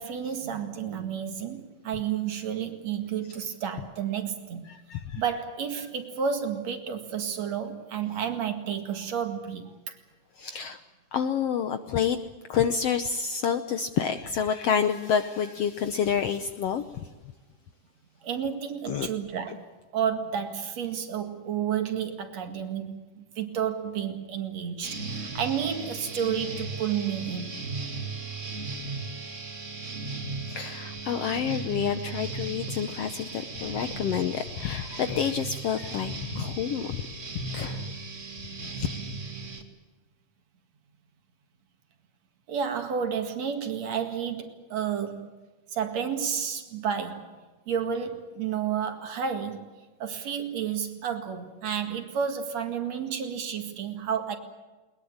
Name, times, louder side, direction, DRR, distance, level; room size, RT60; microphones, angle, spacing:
voice 1, 0.0-4.7 5.2-10.0 18.2-27.6 42.5-45.3 45.7-47.3 47.7-49.7 50.0-54.4, right 8 dB, 60° right, 6 dB, 3.0 m, -31 dB
voice 2, 4.7-5.2 10.4-10.8 11.1-12.2 12.5-17.1 18.9-19.1 19.5-19.6 30.5-37.0 37.3-37.9 38.7-38.9, left 8 dB, 70° left, 9 dB, 1.6 m, -28 dB
sound 1, 24.8-39.6, right 3 dB, 25° right, 2.1 m, -36 dB
21.0 x 21.0 x 8.7 m, 1.3 s
omnidirectional pair, 3.7 m